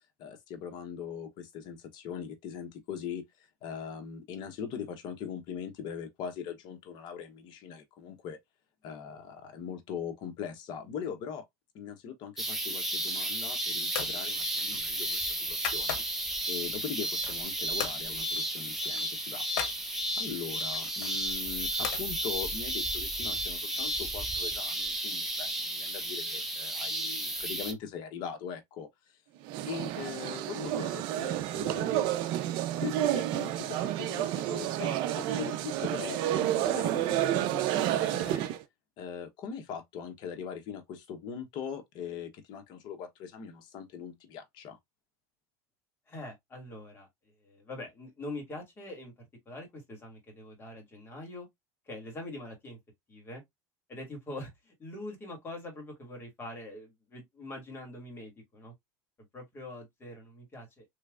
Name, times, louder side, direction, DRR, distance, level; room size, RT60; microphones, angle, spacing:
voice 1, 0.2-8.4 8.8-11.4 11.7-16.0 16.5-19.4 20.2-29.1 29.7-32.1 32.8-38.4 39.0-44.8, left 7 dB, 55° left, 1.0 m, -41 dB
sound 1, 12.4-27.7, right 1 dB, 5° right, 0.9 m, -33 dB
sound 2, 13.0-13.4 13.9-14.2 14.6-16.3 16.8-17.5 17.8-18.0 18.3-18.5 18.7-19.8 20.6-22.1, left 8 dB, 80° left, 1.0 m, -39 dB
sound 3, 29.4-38.6, right 13 dB, 60° right, 0.5 m, -30 dB
voice 2, 46.1-47.1 47.4-49.1 49.5-51.5 51.9-52.8 53.1-53.4 53.9-58.7 59.3-60.9, left 1 dB, 25° left, 2.1 m, -43 dB
3.3 x 3.1 x 2.4 m
supercardioid pair, 120°, 9 cm